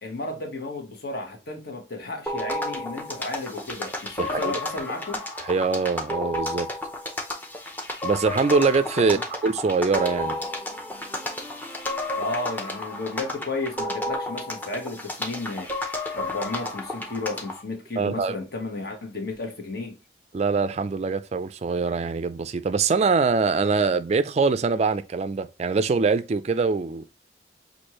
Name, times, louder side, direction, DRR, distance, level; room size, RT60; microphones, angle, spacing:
voice 1, 0.0-5.2 9.0-9.2 12.1-15.7 16.1-20.0, left 2 dB, 55° left, 1.2 m, -33 dB
sound 1, 2.3-17.6, left 1 dB, 10° left, 0.7 m, -32 dB
voice 2, 4.2-4.5 5.4-6.7 8.0-10.4 18.0-18.4 20.3-27.1, right 4 dB, 35° right, 0.3 m, -23 dB
6.2 x 2.6 x 3.0 m
head